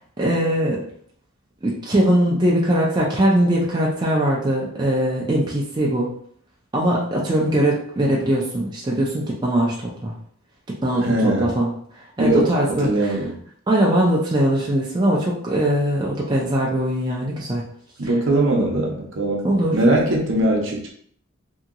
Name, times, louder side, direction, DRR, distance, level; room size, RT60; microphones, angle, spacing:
voice 1, 0.2-0.8 1.6-6.1 6.7-10.1 10.8-11.7 12.2-13.2 13.7-17.6 19.4-19.8, right 1 dB, 20° right, -4 dB, 0.4 m, -21 dB
voice 2, 11.0-11.5 12.2-13.4 18.0-19.5 19.7-20.9, right 1 dB, 60° right, -1 dB, 0.7 m, -20 dB
2.8 x 2.8 x 2.5 m, 0.62 s
head